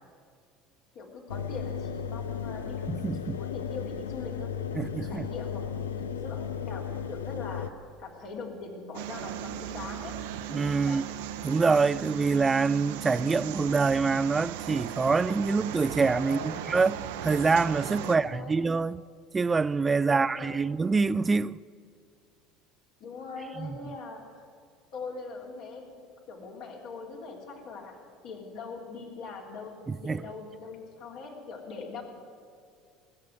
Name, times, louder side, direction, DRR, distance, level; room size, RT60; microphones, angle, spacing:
voice 1, 0.9-7.7 8.0-10.1 10.8-11.0 16.2-16.6 18.0-18.6 20.1-20.7 23.0-24.4 24.9-28.0 28.2-32.0, left 4 dB, 60° left, 3.2 m, -42 dB
Engine, 1.3-7.7, left 7 dB, 80° left, 0.5 m, -35 dB
voice 2, 2.9-3.4 4.8-5.3 10.5-11.0 11.4-19.0 19.3-21.6 23.6-23.7 29.9-30.2, right 4 dB, 20° right, 0.4 m, -25 dB
sound 1, 8.9-18.2, right 10 dB, 70° right, 0.7 m, -37 dB
18.0 x 8.1 x 9.3 m
figure-of-eight pair, 70°, 0 cm